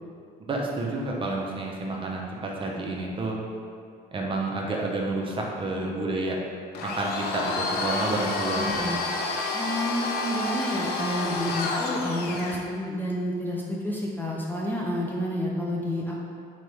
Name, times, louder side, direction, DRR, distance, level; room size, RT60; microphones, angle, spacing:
voice 1, 0.5-3.4 4.1-6.4 6.8-9.0, right 2 dB, 30° right, -2 dB, 0.6 m, -29 dB
Domestic sounds home sounds, 6.7-12.6, left 3 dB, 70° left, 0.5 m, -29 dB
voice 2, 8.5-9.0 9.5-16.2, equal, 10° left, -3 dB, 0.4 m, -30 dB
3.9 x 3.4 x 3.2 m, 2.4 s
cardioid pair, 110°, 17 cm